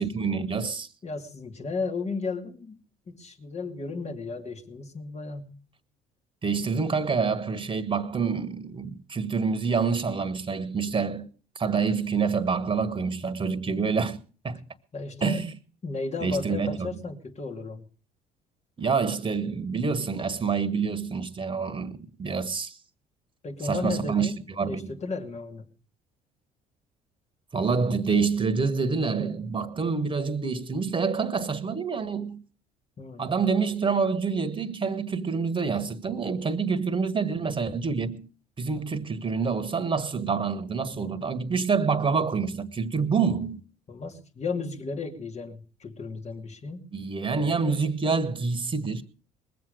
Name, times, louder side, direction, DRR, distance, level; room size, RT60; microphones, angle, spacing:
voice 1, 0.0-0.9 6.4-11.3 11.5-14.2 14.4-14.6 15.2-15.5 16.2-16.9 18.8-22.8 23.6-24.9 27.5-32.4 33.2-38.3 38.6-43.6 46.9-49.0, right 5 dB, 25° right, 1.6 m, -27 dB
voice 2, 1.0-2.8 3.1-5.6 14.9-15.5 15.8-17.8 23.4-24.4 24.7-25.7 33.0-33.3 43.9-46.9, left 4 dB, 35° left, 2.5 m, -34 dB
20.5 x 7.8 x 6.6 m
hypercardioid pair, 55°, 19 cm